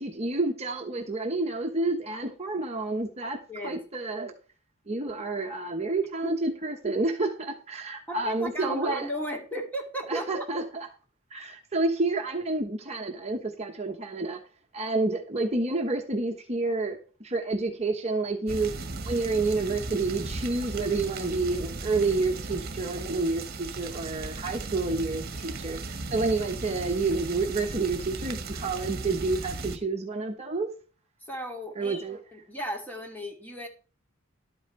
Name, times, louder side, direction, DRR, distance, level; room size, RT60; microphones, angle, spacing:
voice 1, 0.0-4.3 4.9-9.1 10.1-10.9 11.3-14.4 14.7-18.7 19.0-30.7 31.8-32.2, right 3 dB, 30° right, 2 dB, 1.1 m, -29 dB
voice 2, 3.5-3.8 6.2-6.3 8.1-10.2 31.3-32.0 32.3-33.7, equal, 10° left, 2 dB, 2.5 m, -35 dB
sound 1, 18.5-29.8, right 3 dB, 45° right, 1.6 m, -36 dB
12.0 x 8.9 x 3.3 m, 0.37 s
head